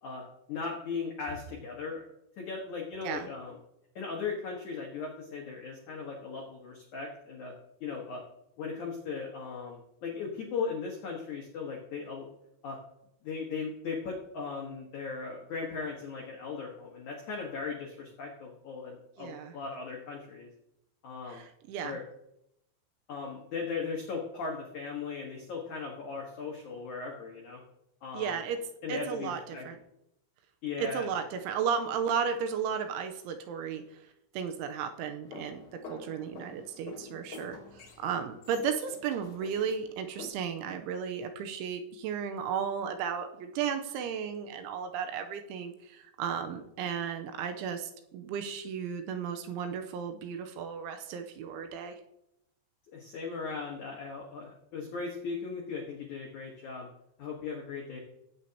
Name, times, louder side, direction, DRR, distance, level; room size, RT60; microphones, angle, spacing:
voice 1, 0.5-2.0 2.4-3.6 3.9-7.5 7.8-8.2 8.6-12.3 12.6-12.8 13.2-20.5 21.0-21.4 21.8-22.0 23.1-27.6 28.0-28.4 28.8-29.6 30.6-31.1 52.9-56.9 57.2-58.0, left 5 dB, 85° left, -1 dB, 1.7 m, -38 dB
voice 2, 19.2-19.5 21.3-22.0 28.1-28.6 28.9-29.8 30.8-34.0 34.3-52.0, right 7 dB, 85° right, 6 dB, 3.1 m, -34 dB
sound 1, 35.2-40.3, left 3 dB, 50° left, 2.1 m, -48 dB
16.0 x 8.5 x 2.8 m, 0.82 s
omnidirectional pair, 5.6 m